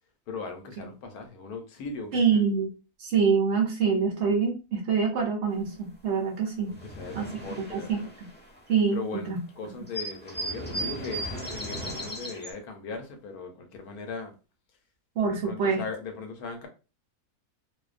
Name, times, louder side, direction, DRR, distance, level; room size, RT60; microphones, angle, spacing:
voice 1, 0.3-2.4 6.7-8.1 8.9-14.3 15.2-16.7, left 4 dB, 80° left, 1.1 m, -39 dB
voice 2, 2.1-2.7 3.0-6.7 7.2-7.3 7.6-8.0 8.7-9.0 9.3-9.4 15.2-15.8, right 5 dB, 65° right, 0.7 m, -25 dB
sound 1, 6.2-6.3 6.5-9.0 9.4-9.5 9.7-12.5, right 1 dB, 15° left, 0.4 m, -36 dB
2.5 x 2.1 x 2.4 m
omnidirectional pair, 1.6 m